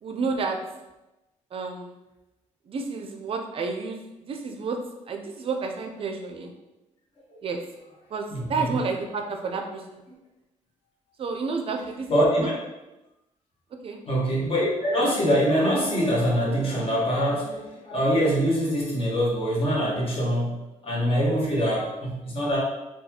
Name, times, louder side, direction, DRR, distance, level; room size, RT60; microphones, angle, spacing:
voice 1, 0.0-0.6 1.5-2.0 2.7-4.8 5.1-6.5 7.4-7.6 8.1-10.0 11.2-12.1 13.8-14.0, right 4 dB, 45° right, 3 dB, 0.4 m, -30 dB
voice 2, 8.3-8.8 12.1-12.6 14.1-20.6 20.8-22.6, equal, 45° left, -4 dB, 1.2 m, -24 dB
3.9 x 2.3 x 2.8 m, 0.99 s
cardioid pair, 105°, 13 cm